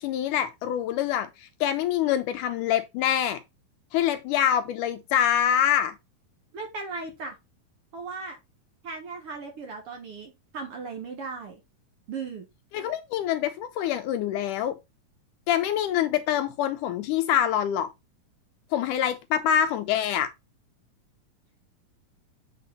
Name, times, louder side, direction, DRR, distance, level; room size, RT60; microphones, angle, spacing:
voice 1, 0.0-3.4 3.9-6.0 12.7-14.8 15.5-17.9 18.7-20.3, left 10 dB, 80° left, 2.0 m, -25 dB
voice 2, 6.5-7.4 7.9-8.4 8.8-11.6 12.1-12.5, right 4 dB, 50° right, 2.0 m, -37 dB
8.3 x 4.4 x 4.0 m
omnidirectional pair, 4.0 m